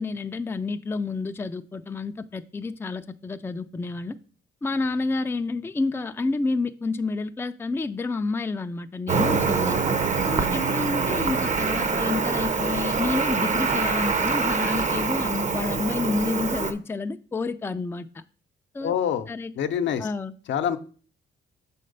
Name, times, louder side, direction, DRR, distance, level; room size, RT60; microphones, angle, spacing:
voice 1, 0.0-4.2 4.6-9.8 10.2-18.2 18.7-18.9 19.3-19.5 20.0-20.3, left 3 dB, 10° left, 8 dB, 0.4 m, -29 dB
Cricket, 9.1-16.7, right 4 dB, 35° right, 0.8 m, -25 dB
voice 2, 18.8-19.3 19.6-20.1 20.5-20.8, left 8 dB, 70° left, 8 dB, 0.7 m, -25 dB
6.5 x 4.3 x 5.3 m, 0.40 s
cardioid pair, 90°, 20 cm